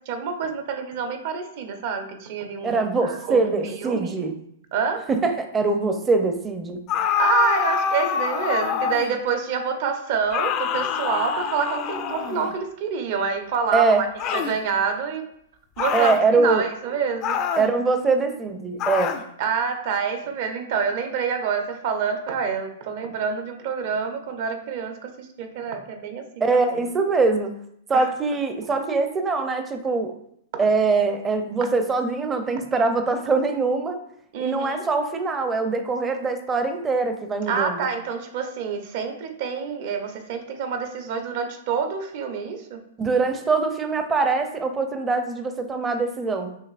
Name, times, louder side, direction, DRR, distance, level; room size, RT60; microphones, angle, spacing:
voice 1, 0.1-2.7 3.0-4.3 4.7-5.0 7.2-15.3 15.8-17.4 19.4-26.8 27.9-28.1 34.3-34.9 37.5-42.8, right 6 dB, 55° right, 6 dB, 0.7 m, -27 dB
voice 2, 2.6-4.3 5.1-6.8 13.7-14.0 15.9-16.6 17.6-19.2 26.4-27.6 27.9-30.1 30.6-34.0 34.4-37.9 43.0-46.5, right 3 dB, 20° right, 7 dB, 0.6 m, -23 dB
sound 1, 6.9-9.2 10.3-12.6 14.2-14.6 15.8-16.2 17.2-17.7 18.8-19.3, left 8 dB, 35° left, 0.4 m, -25 dB
5.7 x 3.0 x 2.5 m, 0.71 s
hypercardioid pair, 120°, 0 cm